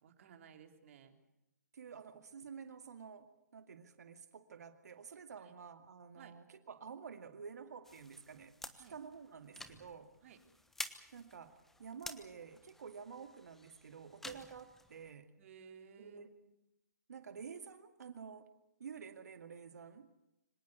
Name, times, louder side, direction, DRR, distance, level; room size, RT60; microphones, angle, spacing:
voice 1, 0.0-1.2 5.4-5.5 6.2-6.3 8.8-8.9 10.2-10.4 15.4-16.5, right 7 dB, 45° right, 5 dB, 3.5 m, -57 dB
voice 2, 1.7-10.1 11.1-15.3 16.0-16.3 17.1-18.5 18.8-20.1, right 6 dB, 65° right, 8 dB, 2.1 m, -50 dB
sound 1, 7.8-15.1, left 2 dB, 5° left, 1.2 m, -51 dB
25.5 x 18.0 x 8.1 m, 0.87 s
hypercardioid pair, 140°, 9 cm